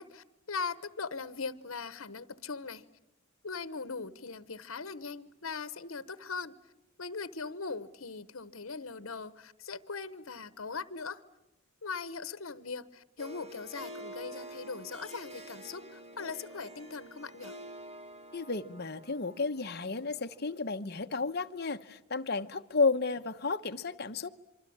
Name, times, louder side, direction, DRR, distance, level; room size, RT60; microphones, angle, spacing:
voice 1, 0.0-2.8 3.4-6.6 7.0-11.2 11.8-17.5, left 4 dB, 75° left, 1.2 m, -40 dB
Harp, 13.2-20.7, equal, 30° right, 1.9 m, -48 dB
voice 2, 18.3-24.3, left 4 dB, 50° left, 1.1 m, -32 dB
26.0 x 25.0 x 8.7 m
head